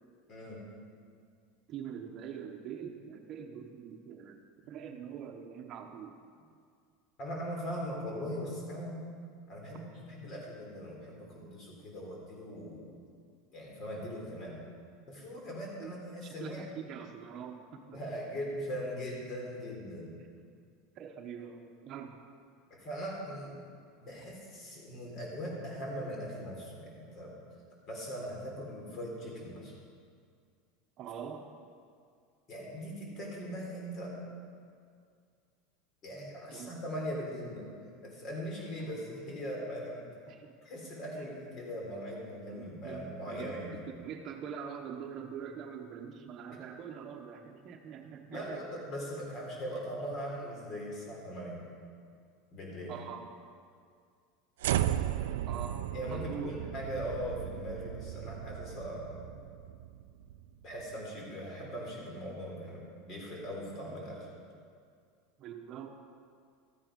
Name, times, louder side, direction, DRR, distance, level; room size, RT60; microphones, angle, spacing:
voice 1, 0.3-0.6 4.6-4.7 7.2-9.0 9.5-13.0 13.5-14.6 15.1-16.7 17.9-20.2 22.7-23.6 24.0-27.3 27.9-29.7 32.5-34.2 36.0-37.7 38.0-40.0 40.6-43.7 48.3-51.6 52.5-53.0 55.9-59.2 60.6-64.3, equal, 40° left, -2 dB, 3.8 m, -40 dB
voice 2, 1.7-4.4 4.7-6.2 15.8-15.9 16.2-18.0 21.0-22.2 31.0-31.6 36.5-36.7 40.3-40.6 42.5-48.6 52.9-53.3 55.5-56.6 63.9-64.0 65.4-65.9, right 7 dB, 40° right, 4 dB, 1.0 m, -44 dB
sound 1, 54.6-60.9, right 12 dB, 85° right, 0.4 m, -35 dB
13.5 x 8.9 x 5.3 m, 2.2 s
supercardioid pair, 130°, 0 cm